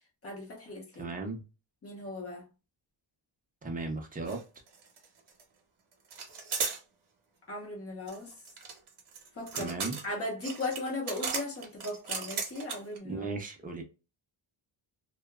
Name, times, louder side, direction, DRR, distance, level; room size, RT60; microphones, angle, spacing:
voice 1, 0.2-1.1 1.8-2.5 7.5-8.3 9.3-9.7 10.0-13.2, left 2 dB, 30° left, 0.9 m, -37 dB
voice 2, 1.0-1.4 3.6-4.4 9.5-10.0 13.0-13.8, right 3 dB, 20° right, 0.5 m, -36 dB
sound 1, 4.3-4.4 4.7-5.4 6.1-6.8 8.1-13.0, right 5 dB, 55° right, 0.9 m, -36 dB
2.8 x 2.2 x 2.3 m
wide cardioid pair, 160°, 49 cm